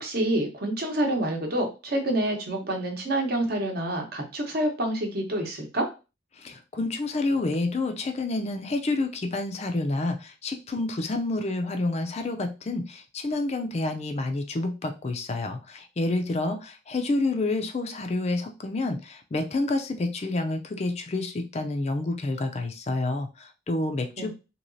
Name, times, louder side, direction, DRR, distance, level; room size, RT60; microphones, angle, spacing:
voice 1, 0.0-5.9 24.2-24.3, right 1 dB, 50° right, 2 dB, 0.9 m, -27 dB
voice 2, 6.4-24.3, left 2 dB, 35° left, 5 dB, 0.4 m, -29 dB
3.1 x 2.8 x 2.6 m, 0.29 s
head